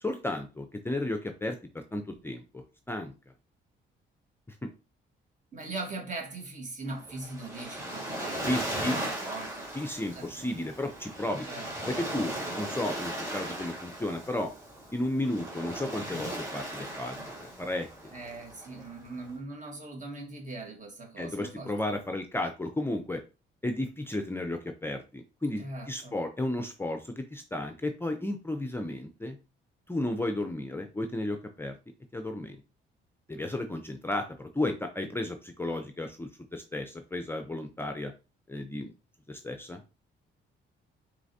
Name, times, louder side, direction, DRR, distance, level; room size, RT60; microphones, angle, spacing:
voice 1, 0.0-3.1 4.6-4.7 8.2-9.0 9.7-11.5 11.9-14.5 14.9-17.9 21.2-23.2 23.6-29.4 29.9-31.8 32.1-32.6 33.3-38.1 38.5-38.9 39.3-39.8, left 1 dB, 10° left, 0.5 m, -33 dB
voice 2, 5.5-9.7 10.1-10.5 11.2-11.7 18.1-21.8 25.6-26.1, right 2 dB, 40° right, 1.5 m, -41 dB
Waves surf, 6.9-19.3, right 1 dB, 15° right, 1.8 m, -38 dB
4.6 x 3.2 x 2.7 m
cardioid pair, 90°, 20 cm